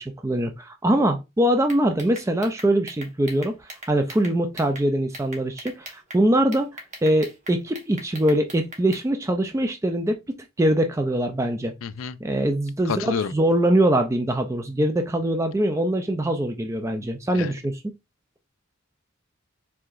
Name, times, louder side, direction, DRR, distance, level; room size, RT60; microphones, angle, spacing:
voice 1, 0.0-11.7 12.2-17.8, right 1 dB, 15° right, 0.4 m, -23 dB
sound 1, 1.6-4.8 5.1-6.2 6.5-9.0, right 1 dB, 35° right, 1.2 m, -40 dB
voice 2, 11.8-12.2 12.9-13.3 17.3-17.5, left 6 dB, 70° left, 0.4 m, -28 dB
4.7 x 3.7 x 2.5 m
head